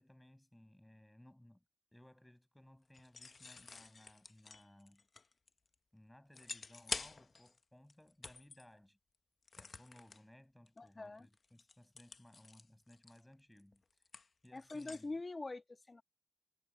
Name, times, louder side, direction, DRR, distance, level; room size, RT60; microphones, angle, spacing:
voice 1, 0.0-1.6 1.9-5.1 5.9-9.0 9.6-13.8 14.4-15.1, left 1 dB, 10° left, 5.8 m, -62 dB
sound 1, 2.9-5.7 6.3-7.6 7.9-8.6 9.5-10.2 10.7-10.9 11.2-15.1, left 4 dB, 60° left, 0.7 m, -48 dB
voice 2, 10.8-11.3 14.5-16.0, left 2 dB, 35° left, 1.5 m, -44 dB
wide cardioid pair, 100°, 0 cm